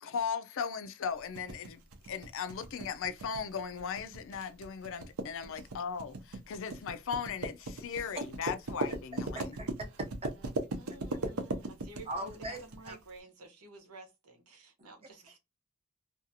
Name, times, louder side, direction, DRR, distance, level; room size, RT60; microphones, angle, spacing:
voice 1, 0.0-1.8 2.1-9.5, left 6 dB, 60° left, 0.4 m, -37 dB
sound 1, 1.3-12.9, right 2 dB, 65° right, 0.6 m, -38 dB
voice 2, 9.6-10.3 12.1-13.0, right 1 dB, 25° right, 0.7 m, -40 dB
voice 3, 10.2-15.4, right 2 dB, 85° right, 1.0 m, -52 dB
2.6 x 2.4 x 2.7 m
head